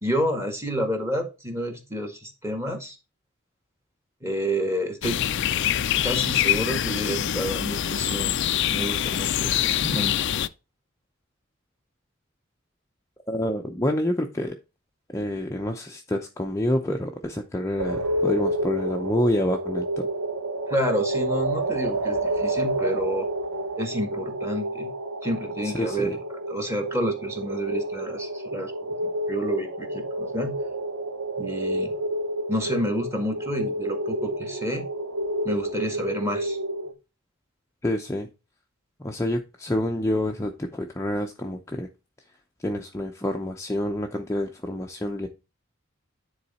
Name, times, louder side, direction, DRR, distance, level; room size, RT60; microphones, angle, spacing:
voice 1, 0.0-3.0 4.2-5.2 6.0-8.4 8.7-10.2 20.7-23.3 23.8-24.9 25.2-26.2 26.5-28.7 29.0-30.5 31.4-32.0 32.5-34.8 35.4-36.6, equal, 15° right, 4 dB, 1.8 m, -29 dB
sound 1, 5.0-10.5, left 10 dB, 55° left, 0.4 m, -25 dB
voice 2, 13.3-14.6 15.1-20.1 25.6-26.2 37.8-38.3 39.0-41.9 42.6-45.3, left 1 dB, 15° left, 2 dB, 0.7 m, -27 dB
sound 2, 17.8-36.9, right 1 dB, 90° right, 1.0 m, -29 dB
9.9 x 3.9 x 4.2 m, 0.28 s
head